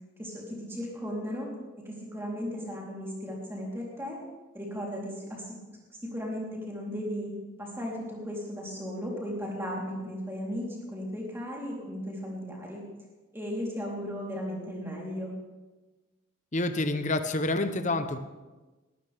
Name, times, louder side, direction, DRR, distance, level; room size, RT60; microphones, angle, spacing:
voice 1, 0.2-1.5 1.9-4.2 4.5-5.5 6.0-7.3 7.6-12.8 13.3-15.3, equal, 10° right, -3 dB, 3.6 m, -36 dB
voice 2, 16.5-18.2, left 2 dB, 35° left, 8 dB, 0.9 m, -28 dB
19.5 x 14.0 x 3.6 m, 1.2 s
head